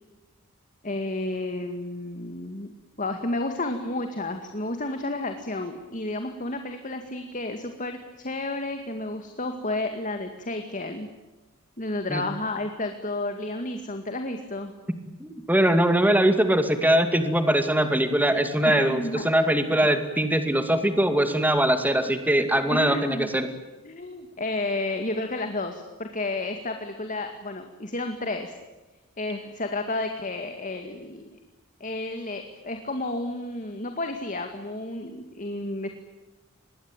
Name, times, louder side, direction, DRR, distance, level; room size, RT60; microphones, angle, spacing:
voice 1, 0.8-2.7 3.0-11.1 11.8-14.7 18.6-19.3 19.7-19.9 22.7-23.3 23.8-28.5 29.2-31.4 31.8-35.9, left 2 dB, 35° left, 6 dB, 2.1 m, -31 dB
voice 2, 15.2-23.5, right 1 dB, 10° right, 8 dB, 2.3 m, -22 dB
26.5 x 21.0 x 9.0 m, 1.1 s
head